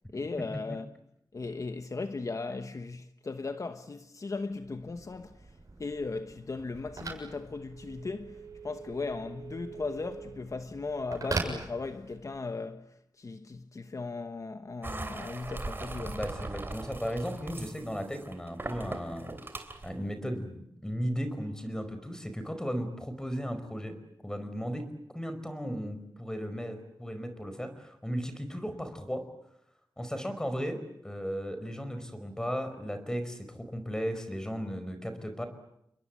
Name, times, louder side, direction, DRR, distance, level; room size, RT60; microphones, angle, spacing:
voice 1, 0.1-1.0 1.3-5.5 5.8-16.2, left 3 dB, 45° left, 1.1 m, -37 dB
Telephone, 4.6-12.4, right 3 dB, 45° right, 7.1 m, -41 dB
sound 1, 14.8-19.9, right 2 dB, 30° right, 3.1 m, -40 dB
voice 2, 16.1-19.3 19.8-23.9 24.2-24.9 25.1-29.2 30.0-35.5, equal, 10° left, 4.8 m, -35 dB
29.5 x 22.0 x 8.4 m
wide cardioid pair, 115°, 8 cm